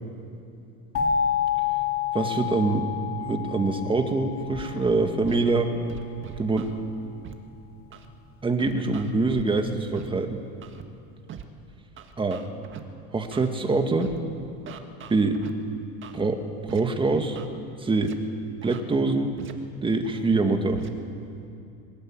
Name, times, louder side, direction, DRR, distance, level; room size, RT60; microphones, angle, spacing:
sound 1, 0.9-5.7, left 8 dB, 40° left, 3.5 m, -29 dB
voice 1, 2.1-2.9 3.2-5.7 6.4-6.7 8.4-10.4 12.2-12.4 13.1-14.1 15.1-15.4 16.1-17.4 17.8-18.1 18.6-19.4 19.8-20.8, right 3 dB, 15° right, 5 dB, 2.0 m, -24 dB
Scratching (performance technique), 4.5-4.7 5.2-5.4 5.9-6.7 7.2-7.3 7.9-8.1 8.6-9.4 9.9-10.1 10.6-10.8 11.3-11.4 12.0-12.8 13.3-13.5 14.0-14.2 14.7-15.5 16.0-16.2 16.7-16.8 17.1-17.5 18.0-18.1 18.6-18.8 19.4-19.5 20.0-20.2 20.7-20.9, right 9 dB, 35° right, 1.7 m, -41 dB
22.0 x 19.0 x 8.9 m, 2.6 s
supercardioid pair, 135°, 35 cm